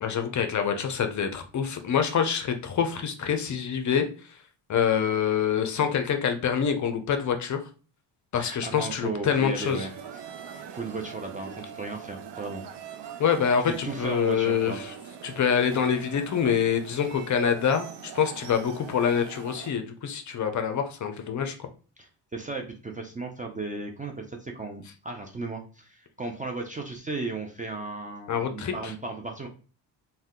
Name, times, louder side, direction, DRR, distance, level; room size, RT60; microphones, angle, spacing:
voice 1, 0.0-4.1 4.7-7.6 8.3-9.9 13.2-14.9 15.2-17.9 18.1-21.7 28.3-28.7, left 7 dB, 40° left, 7 dB, 0.5 m, -26 dB
voice 2, 8.3-12.6 13.0-13.2 13.7-14.8 22.0-29.5, right 3 dB, 20° right, 1 dB, 0.3 m, -36 dB
sound 1, 9.5-19.7, right 6 dB, 65° right, 0.6 m, -41 dB
2.6 x 2.2 x 3.5 m, 0.37 s
cardioid pair, 105°, 44 cm